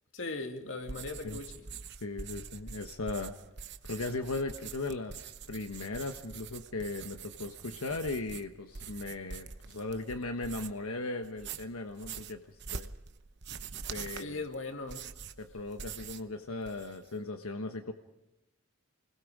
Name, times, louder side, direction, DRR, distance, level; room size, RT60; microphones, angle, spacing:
voice 1, 0.1-1.7 14.2-15.1, left 3 dB, 60° left, 2.4 m, -39 dB
sound 1, 0.8-10.9 11.2-16.3 16.6-17.1, right 6 dB, 55° right, 1.0 m, -45 dB
voice 2, 2.0-3.3 3.9-12.9 13.9-14.4 15.4-17.9, left 2 dB, 85° left, 1.3 m, -37 dB
28.5 x 21.0 x 4.9 m
head